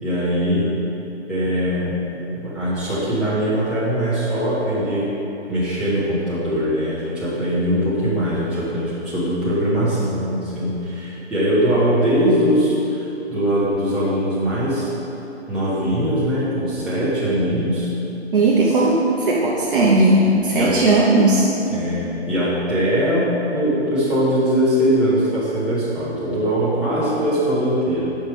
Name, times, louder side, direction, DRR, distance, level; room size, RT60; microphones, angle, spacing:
voice 1, 0.0-0.7 1.3-2.0 2.3-5.1 5.5-14.9 15.5-17.9 20.5-20.8 21.7-28.2, equal, ahead, -12 dB, 1.7 m, -21 dB
voice 2, 18.3-21.5, right 2 dB, 50° right, -5 dB, 1.0 m, -17 dB
7.3 x 5.5 x 4.9 m, 3.0 s
figure-of-eight pair, 145°, 35 cm